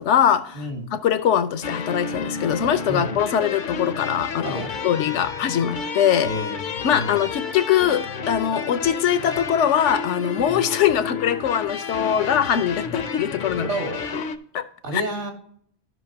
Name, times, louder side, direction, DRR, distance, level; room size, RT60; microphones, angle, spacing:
voice 1, 0.0-0.6 0.9-6.3 6.8-13.7 14.1-14.2 14.5-14.6 14.9-15.0, left 9 dB, 80° left, 1.0 m, -22 dB
voice 2, 0.5-0.9 2.9-3.1 4.4-4.7 6.2-7.2 10.4-10.6 12.8-13.0 13.6-14.1 14.8-15.3, right 1 dB, 70° right, 1.9 m, -30 dB
sound 1, 1.6-14.4, left 6 dB, 55° left, 0.6 m, -31 dB
13.5 x 5.7 x 2.8 m
omnidirectional pair, 1.2 m